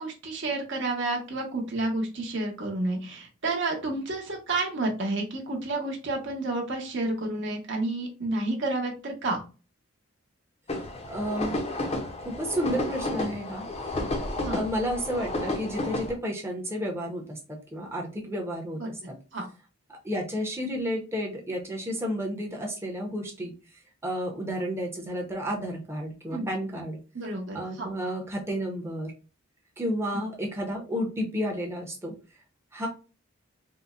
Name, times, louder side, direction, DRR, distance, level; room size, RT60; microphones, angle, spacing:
voice 1, 0.0-9.4 14.4-14.6 18.8-18.9 19.3-19.5 26.3-26.5 27.1-27.9 30.1-30.2, right 2 dB, 55° right, 1 dB, 0.9 m, -30 dB
sound 1, 10.7-16.1, left 2 dB, 30° left, 0.5 m, -31 dB
voice 2, 11.1-11.6 12.2-13.7 14.5-18.8 19.1-19.2 20.0-23.5 24.0-27.0 27.5-29.1 29.8-32.1 32.7-32.9, equal, 10° right, 0 dB, 0.6 m, -31 dB
3.8 x 2.0 x 2.3 m, 0.33 s
head